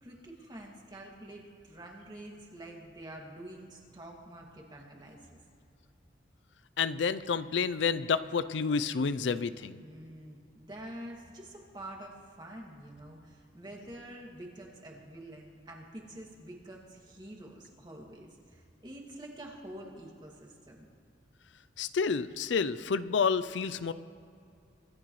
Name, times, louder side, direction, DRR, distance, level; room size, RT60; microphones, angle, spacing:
voice 1, 0.0-5.4 9.8-20.9, right 1 dB, 25° right, -1 dB, 2.2 m, -47 dB
voice 2, 6.8-9.8 21.8-23.9, left 5 dB, 80° left, 14 dB, 0.5 m, -29 dB
25.5 x 12.5 x 3.2 m, 2.4 s
head